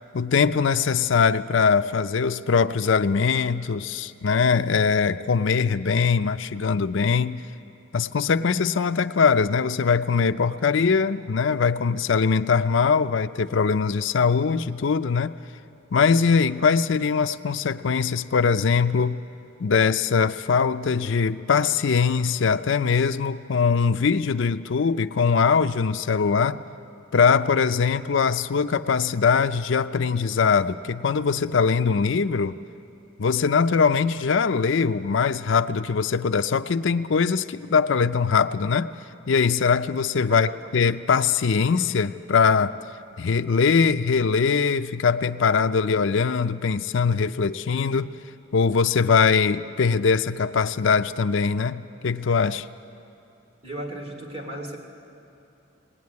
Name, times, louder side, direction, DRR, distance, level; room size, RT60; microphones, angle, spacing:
voice 1, 0.1-7.4 7.9-15.3 15.9-19.2 19.6-26.6 27.1-32.6 33.2-38.9 39.3-42.8 43.2-48.1 48.5-52.7, left 5 dB, 65° left, 10 dB, 0.5 m, -22 dB
voice 2, 40.3-40.9 53.6-54.8, right 1 dB, 30° right, 1 dB, 2.9 m, -36 dB
20.5 x 18.5 x 9.5 m, 2.8 s
head